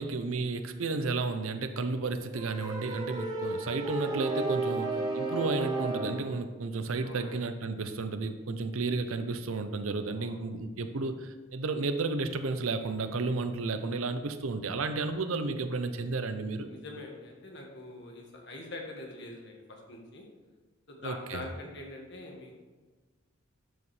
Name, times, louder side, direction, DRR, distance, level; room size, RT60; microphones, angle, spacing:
voice 1, 0.0-16.7 21.0-21.4, right 3 dB, 85° right, 9 dB, 0.6 m, -32 dB
sound 1, 2.3-6.4, right 3 dB, 20° right, 1.0 m, -33 dB
voice 2, 7.0-7.4 10.1-10.4 16.7-20.2 20.9-22.6, left 2 dB, 60° left, 1 dB, 1.5 m, -44 dB
12.5 x 5.0 x 3.2 m, 1.3 s
head